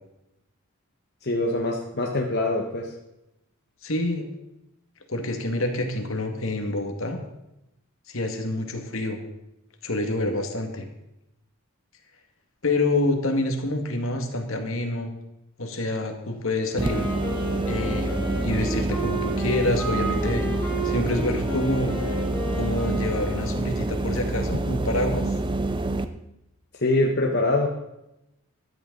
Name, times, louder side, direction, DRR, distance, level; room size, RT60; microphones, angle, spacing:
voice 1, 1.2-2.9 26.8-27.7, left 2 dB, 45° left, 0 dB, 1.3 m, -24 dB
voice 2, 3.8-4.3 5.1-7.2 8.1-9.2 9.8-10.9 12.6-15.1 15.6-17.1 17.7-22.1 22.6-25.3, left 2 dB, 65° left, 4 dB, 1.9 m, -27 dB
Wind instrument woodwind instrument, 16.7-23.9, right 1 dB, 10° left, 4.1 m, -33 dB
sound 1, 16.8-26.0, right 2 dB, 20° right, 0.6 m, -27 dB
14.0 x 12.0 x 3.9 m, 0.89 s
head